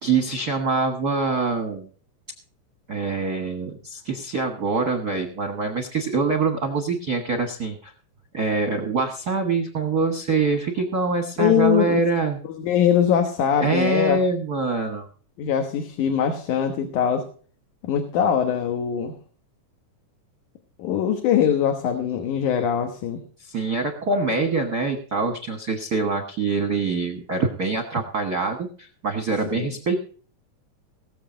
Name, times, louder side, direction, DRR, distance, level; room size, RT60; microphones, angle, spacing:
voice 1, 0.0-1.9 2.9-7.9 8.3-12.4 13.6-15.1 23.4-30.1, right 3 dB, 50° right, 5 dB, 1.1 m, -24 dB
voice 2, 11.4-12.0 12.5-14.2 15.4-17.2 17.8-19.1 20.8-23.2 29.5-29.7, left 9 dB, 75° left, 5 dB, 2.7 m, -22 dB
19.0 x 7.2 x 5.1 m, 0.42 s
omnidirectional pair, 3.7 m